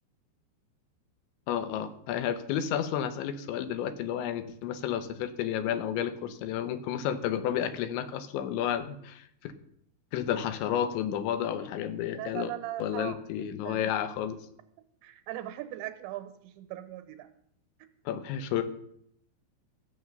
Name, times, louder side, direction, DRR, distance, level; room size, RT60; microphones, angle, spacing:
voice 1, 1.5-9.5 10.1-12.5 12.8-14.4 18.1-18.6, left 9 dB, 80° left, 10 dB, 3.2 m, -31 dB
voice 2, 12.0-13.9 15.0-17.3, right 14 dB, 85° right, 10 dB, 3.2 m, -40 dB
14.5 x 7.4 x 6.5 m, 0.70 s
omnidirectional pair, 5.3 m